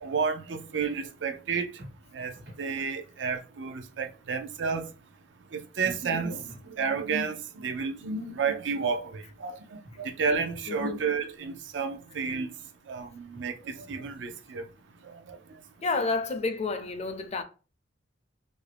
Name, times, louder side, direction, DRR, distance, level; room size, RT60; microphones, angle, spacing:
voice 1, 0.0-1.7 2.1-2.3 2.6-4.9 5.5-6.4 6.7-12.5 12.9-14.6 15.3-15.4, right 5 dB, 85° right, 0.5 m, -31 dB
sound 1, 1.8-2.7 5.8-6.7 9.8-10.7 13.3-14.3, equal, 70° right, 1.3 m, -49 dB
voice 2, 6.1-6.4 10.7-11.0 15.8-17.4, left 3 dB, 35° left, 0.4 m, -30 dB
2.9 x 2.6 x 3.3 m
head